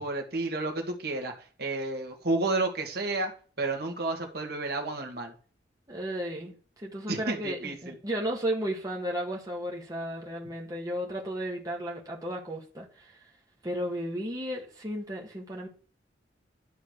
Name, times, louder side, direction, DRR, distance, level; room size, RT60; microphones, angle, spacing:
voice 1, 0.0-1.3 1.6-3.3 3.6-5.3 7.1-7.9, right 2 dB, 60° right, 1.7 m, -31 dB
voice 2, 5.9-6.5 6.8-13.2 13.6-15.7, equal, 20° right, 1.7 m, -34 dB
11.0 x 4.0 x 6.5 m
head